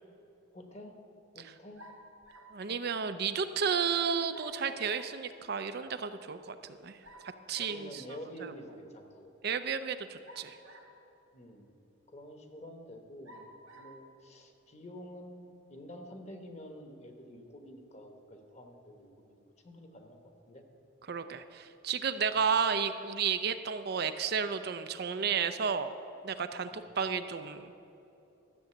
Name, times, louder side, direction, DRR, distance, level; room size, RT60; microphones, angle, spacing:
voice 1, 0.5-1.0 1.3-1.8 7.5-9.3 11.3-11.7 12.1-19.4 19.6-20.2 20.5-20.7 22.3-22.5 26.7-26.9, equal, 35° left, 5 dB, 1.2 m, -49 dB
sound 1, 1.8-2.6 4.3-5.1 7.0-7.8 10.2-11.1 11.8-11.9 13.2-14.0, right 1 dB, 80° right, 1.3 m, -53 dB
voice 2, 2.5-6.6 6.8-7.0 7.5-8.5 9.4-10.6 21.1-25.9 26.2-27.7, right 6 dB, 50° right, 9 dB, 0.5 m, -32 dB
13.0 x 7.1 x 7.8 m, 2.9 s
head